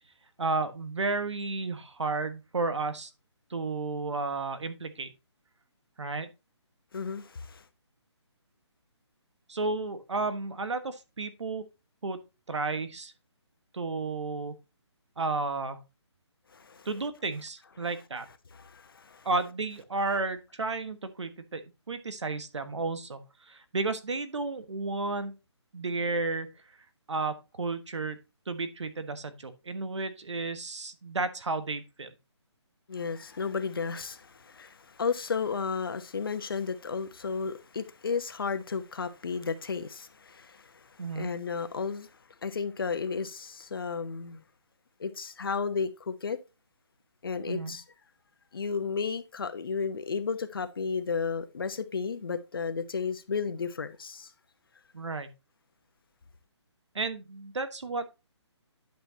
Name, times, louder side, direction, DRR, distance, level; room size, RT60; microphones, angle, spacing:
voice 1, 0.4-3.1 3.5-5.1 6.0-6.3 9.5-11.6 12.0-12.2 12.5-13.1 13.7-14.5 15.2-15.8 16.8-18.3 19.2-21.6 21.9-25.3 25.7-26.5 27.1-28.2 28.5-32.1 41.0-41.3 47.5-47.8 54.9-55.3 56.9-58.1, right 3 dB, 80° right, 1.5 m, -32 dB
voice 2, 6.9-7.6 16.5-16.9 18.5-19.3 32.9-44.4 45.0-46.4 47.2-47.8 48.5-54.3, left 5 dB, 50° left, 1.0 m, -33 dB
10.5 x 5.9 x 2.8 m
hypercardioid pair, 175°, 15 cm